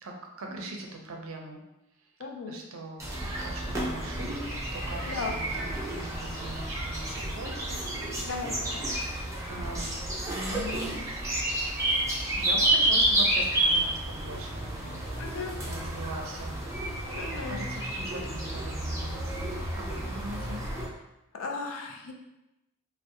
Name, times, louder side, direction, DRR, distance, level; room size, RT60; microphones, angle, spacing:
voice 1, 0.0-1.6 2.5-3.1 3.4-4.5 4.7-8.3 9.5-11.0 12.4-15.0 15.4-16.6 17.2-19.5 19.8-20.6, right 2 dB, 70° right, 1 dB, 0.4 m, -41 dB
voice 2, 2.2-2.6 5.1-5.4 8.2-8.9 15.2-15.6 15.8-16.1 17.2-17.6 21.3-22.1, left 4 dB, 70° left, 3 dB, 0.4 m, -36 dB
sound 1, 3.0-20.9, right 1 dB, 15° right, 0.4 m, -30 dB
2.6 x 2.0 x 2.6 m, 0.94 s
head